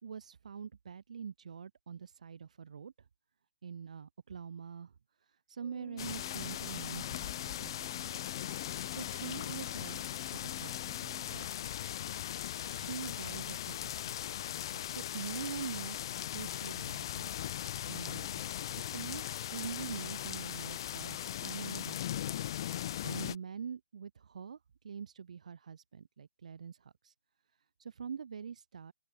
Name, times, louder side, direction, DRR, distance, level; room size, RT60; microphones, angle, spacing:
voice 1, 0.0-2.9 3.6-4.9 5.5-8.3 8.6-11.5 12.7-17.5 17.9-22.2 23.0-24.6 24.8-27.1 27.8-28.9, right 7 dB, 55° right, 4.3 m, -45 dB
Organ, 5.6-12.1, left 7 dB, 10° left, 3.6 m, -55 dB
sound 1, 6.0-23.4, left 11 dB, 30° left, 0.7 m, -39 dB
open air
hypercardioid pair, 165°, 5 cm